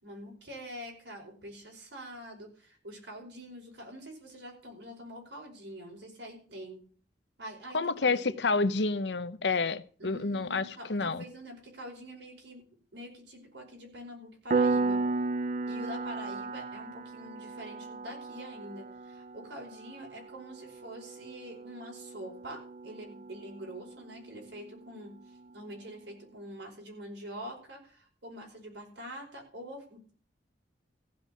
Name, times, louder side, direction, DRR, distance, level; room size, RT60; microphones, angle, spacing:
voice 1, 0.0-6.8 7.4-8.3 10.0-12.7 12.9-15.0 15.7-30.1, equal, 80° right, 5.2 m, -45 dB
voice 2, 7.7-11.2, left 3 dB, 70° left, 0.8 m, -29 dB
Piano, 14.5-24.9, right 3 dB, 45° right, 0.5 m, -35 dB
15.5 x 5.5 x 8.4 m
head